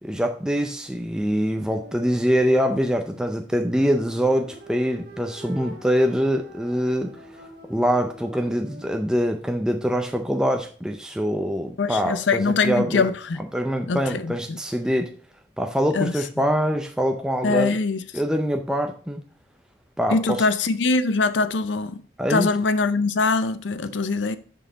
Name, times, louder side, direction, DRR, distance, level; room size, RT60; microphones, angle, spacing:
voice 1, 0.0-13.1 13.5-15.1 15.6-17.8 18.1-19.2 20.0-20.5 22.2-22.5, equal, 5° right, 0.5 m, -24 dB
sound 1, 1.7-9.0, right 1 dB, 55° right, 1.4 m, -45 dB
voice 2, 11.8-13.4 13.9-14.6 15.9-16.1 17.4-18.0 20.1-22.0 22.3-24.4, left 4 dB, 80° left, 0.6 m, -23 dB
6.1 x 5.5 x 3.9 m
head